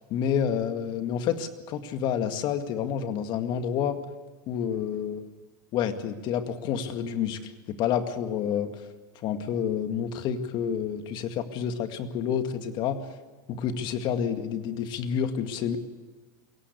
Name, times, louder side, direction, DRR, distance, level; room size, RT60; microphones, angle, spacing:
voice 1, 0.1-4.0 4.5-5.3 5.7-8.7 9.2-13.0 13.5-15.8, left 8 dB, 45° left, 8 dB, 2.1 m, -29 dB
23.0 x 17.5 x 8.4 m, 1.3 s
supercardioid pair, 125°, 10 cm